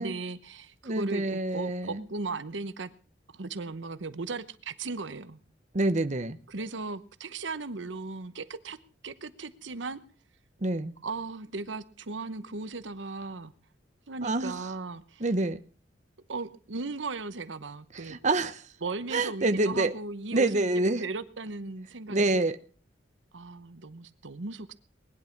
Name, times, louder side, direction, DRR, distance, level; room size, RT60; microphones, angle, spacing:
voice 1, 0.0-2.9 3.3-5.4 6.5-8.8 9.0-10.0 11.0-13.5 14.1-15.2 16.3-18.2 18.8-20.7 21.0-22.4 23.3-24.7, right 3 dB, 85° right, 1.0 m, -37 dB
voice 2, 0.8-2.0 5.7-6.4 10.6-10.9 14.2-14.6 15.2-15.6 17.9-18.6 19.1-19.9 20.3-21.0 22.1-22.6, right 2 dB, 40° right, 1.0 m, -27 dB
20.0 x 11.0 x 5.9 m
head